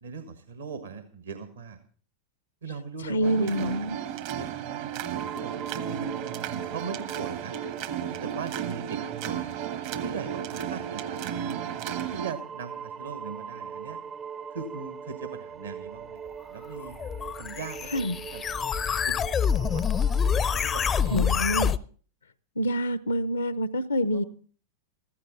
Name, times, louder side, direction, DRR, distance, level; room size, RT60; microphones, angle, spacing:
voice 1, 0.0-1.8 2.6-3.7 4.3-6.0 6.5-7.6 8.0-9.5 10.0-11.3 12.1-14.0 14.5-16.2 16.5-17.0 17.4-17.9 18.3-18.6 19.1-19.8 20.4-21.2 24.0-24.2, right 5 dB, 70° right, 1.4 m, -40 dB
voice 2, 3.0-3.9 17.9-18.2 21.1-21.7 22.6-24.2, equal, 75° left, 0.7 m, -26 dB
sound 1, 3.2-12.3, right 9 dB, 50° right, 1.1 m, -34 dB
sound 2, 5.2-21.7, right 7 dB, 30° right, 0.6 m, -41 dB
sound 3, 16.8-21.8, left 7 dB, 25° left, 0.5 m, -26 dB
15.0 x 14.0 x 3.8 m
figure-of-eight pair, 90°, 0 cm